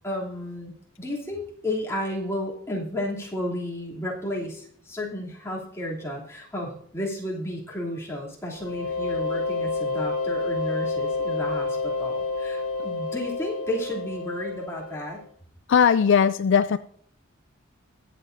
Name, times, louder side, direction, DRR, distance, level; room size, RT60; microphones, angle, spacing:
voice 1, 0.0-15.2, left 1 dB, 15° left, -4 dB, 2.9 m, -32 dB
sound 1, 8.6-15.2, left 3 dB, 85° left, 1.6 m, -29 dB
voice 2, 15.7-16.8, left 7 dB, 55° left, 12 dB, 0.4 m, -19 dB
22.0 x 7.6 x 2.7 m, 0.64 s
head